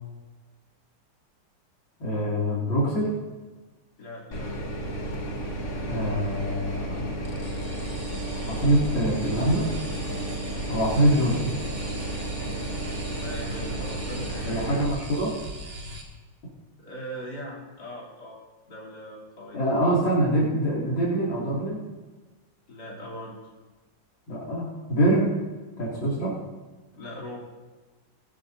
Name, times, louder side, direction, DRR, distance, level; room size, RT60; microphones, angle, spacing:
voice 1, 2.0-3.1 5.9-7.1 8.5-9.7 10.7-11.5 14.4-15.3 19.5-21.8 24.3-25.3 25.8-26.3, right 1 dB, 75° left, -7 dB, 3.4 m, -24 dB
voice 2, 4.0-4.5 10.8-11.2 13.1-14.8 15.2-15.3 16.8-18.4 18.7-19.6 22.7-23.3 26.9-27.4, equal, 55° left, -4 dB, 3.8 m, -40 dB
sound 1, 4.3-14.9, right 1 dB, 40° left, 2.0 m, -32 dB
sound 2, 7.2-16.0, right 1 dB, 50° right, 2.4 m, -39 dB
19.5 x 13.0 x 2.7 m, 1.3 s
omnidirectional pair, 2.2 m